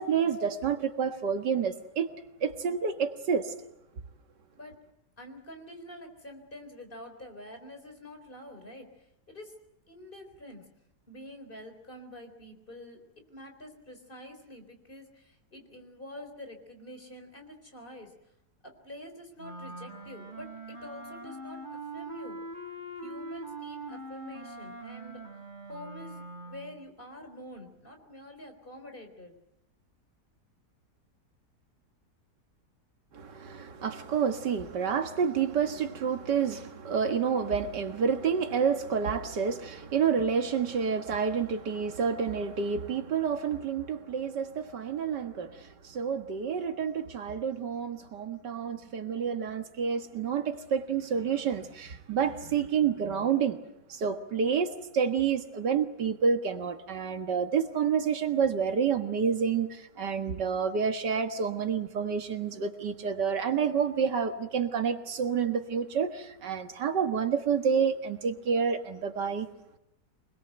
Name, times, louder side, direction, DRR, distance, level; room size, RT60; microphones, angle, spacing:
voice 1, 0.0-2.1 2.4-3.5 33.1-53.6 53.9-69.5, right 6 dB, 85° right, 2.3 m, -29 dB
voice 2, 5.2-9.5 9.9-10.7 11.1-18.1 18.6-21.6 21.9-22.4 23.0-25.3 25.7-29.3, left 1 dB, 30° left, 4.1 m, -47 dB
Wind instrument woodwind instrument, 19.4-26.8, right 1 dB, 30° right, 4.8 m, -42 dB
25.0 x 21.0 x 8.0 m
omnidirectional pair, 1.8 m